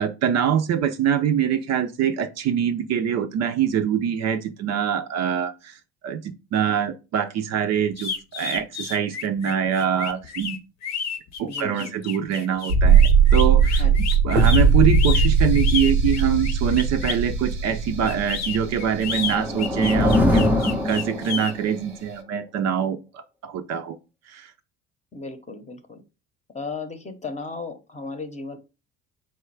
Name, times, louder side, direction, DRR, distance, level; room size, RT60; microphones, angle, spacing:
voice 1, 0.0-5.8 6.0-10.6 11.4-13.8 14.2-24.0 24.3-24.5, right 8 dB, 50° right, 0.5 m, -24 dB
sound 1, 7.9-17.3 18.1-21.5, left 6 dB, 50° left, 0.8 m, -31 dB
voice 2, 11.4-12.0 13.8-13.9 25.1-26.0 26.5-28.6, left 3 dB, 20° left, 0.9 m, -35 dB
sound 2, 12.7-19.5 19.8-19.9, right 5 dB, 85° right, 0.9 m, -19 dB
sound 3, 18.8-21.7, left 1 dB, 5° right, 0.6 m, -22 dB
4.2 x 2.2 x 4.6 m
hypercardioid pair, 70°, 35 cm